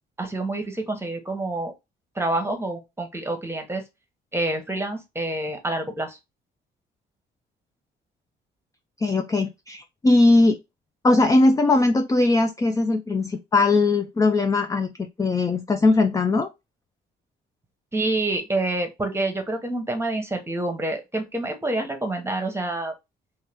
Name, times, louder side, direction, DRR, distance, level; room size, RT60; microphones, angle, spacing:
voice 1, 0.2-1.7 2.2-3.8 4.3-6.2 17.9-22.9, right 2 dB, 10° right, 5 dB, 0.9 m, -27 dB
voice 2, 9.0-10.6 11.0-16.5, left 2 dB, 15° left, 6 dB, 0.3 m, -20 dB
2.7 x 2.2 x 3.3 m, 0.22 s
cardioid pair, 90°, 20 cm